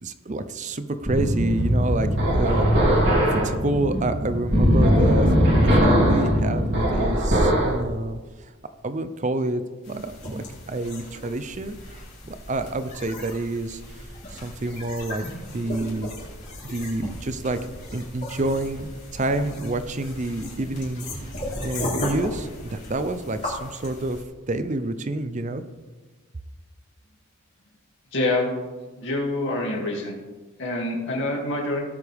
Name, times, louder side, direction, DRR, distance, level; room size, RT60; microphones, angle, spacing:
voice 1, 0.0-2.7 3.3-5.3 5.5-8.5 8.8-14.0 14.3-15.2 15.5-16.1 16.6-17.6 17.9-21.1 21.6-24.2 24.5-25.6, right 2 dB, 35° right, 10 dB, 0.5 m, -28 dB
sound 1, 1.1-7.8, equal, 50° right, 3.0 m, -20 dB
sound 2, 9.8-24.2, left 1 dB, 35° left, 4.0 m, -36 dB
voice 2, 28.1-28.5 29.0-30.2 30.6-31.8, left 2 dB, 55° left, -1 dB, 2.7 m, -26 dB
17.5 x 8.3 x 3.5 m, 1.3 s
head